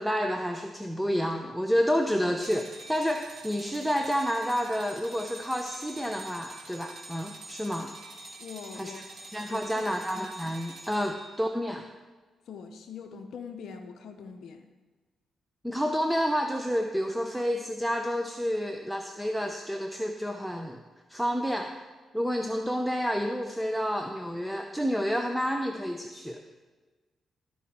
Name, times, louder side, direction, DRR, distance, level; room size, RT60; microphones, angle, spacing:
voice 1, 0.0-7.9 8.7-9.0 9.3-11.9 15.6-20.8 21.1-21.8 22.1-26.4, equal, ahead, 5 dB, 0.6 m, -29 dB
sound 1, 2.4-11.4, right 2 dB, 55° right, 2.4 m, -46 dB
voice 2, 8.4-9.0 9.5-9.9 12.5-14.6, left 6 dB, 75° left, 4 dB, 0.6 m, -43 dB
13.5 x 4.6 x 4.3 m, 1.3 s
supercardioid pair, 55°, 0 cm